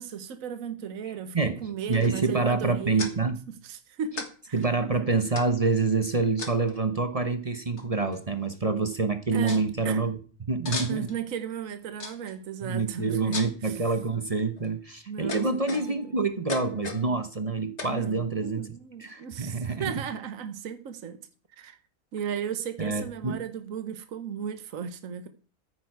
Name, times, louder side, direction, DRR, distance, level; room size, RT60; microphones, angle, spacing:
voice 1, 0.0-3.2 3.5-4.7 9.3-10.1 10.9-13.8 15.1-16.3 17.8-21.2 21.5-21.8 22.1-25.3, right 8 dB, 65° right, 1.4 m, -36 dB
sound 1, 1.9-2.3 3.0-3.1 4.2-4.3 4.6-4.7 5.4-5.7 6.4-6.8 7.8-7.9 8.1-8.5 8.9-9.0 9.5-9.7 10.7-11.2 12.0-12.4 13.3-13.7 14.4-14.7 15.3-16.1 16.5-17.1 17.8-18.0, left 4 dB, 50° left, 1.9 m, -36 dB
voice 2, 1.9-3.4 4.5-10.2 10.5-11.1 12.6-18.7 19.0-19.9 22.8-23.4, right 4 dB, 30° right, 0.9 m, -27 dB
14.0 x 9.3 x 4.7 m
omnidirectional pair, 1.5 m